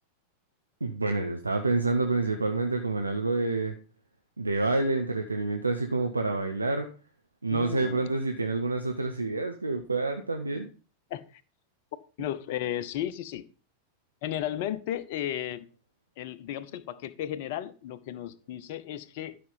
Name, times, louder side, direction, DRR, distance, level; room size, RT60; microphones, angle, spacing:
voice 1, 0.8-3.7 4.4-6.9 7.4-10.7, right 3 dB, 80° right, 5 dB, 0.9 m, -28 dB
voice 2, 7.5-8.0 11.1-11.2 12.2-13.4 14.2-15.7 16.2-19.4, left 11 dB, 50° left, 13 dB, 0.7 m, -34 dB
12.0 x 5.3 x 5.6 m, 0.36 s
figure-of-eight pair, 90°, 0 cm